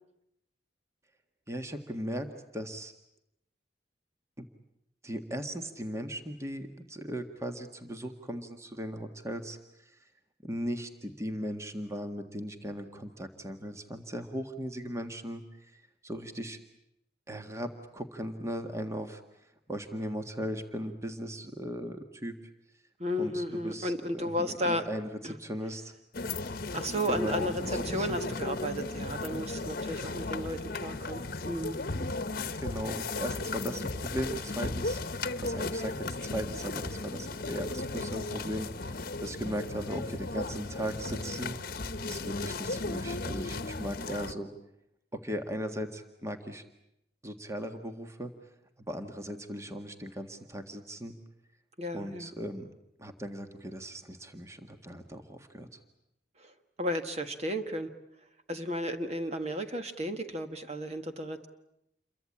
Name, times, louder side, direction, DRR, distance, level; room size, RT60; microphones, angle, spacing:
voice 1, 1.5-2.3 2.5-2.9 4.4-4.5 5.0-10.1 10.4-16.6 17.3-22.3 23.2-25.9 27.1-28.2 32.6-41.6 42.1-44.5 45.1-46.6 47.2-48.3 48.8-51.1 51.9-52.7 53.0-55.8, equal, 15° right, 6 dB, 1.7 m, -38 dB
voice 2, 23.0-24.9 25.2-25.4 26.7-31.8 51.8-52.3 56.4-56.5 56.8-57.9 58.5-61.5, equal, 35° right, 7 dB, 1.6 m, -33 dB
sound 1, 26.1-44.3, left 3 dB, 50° left, 1.1 m, -35 dB
28.5 x 23.0 x 8.7 m, 0.81 s
head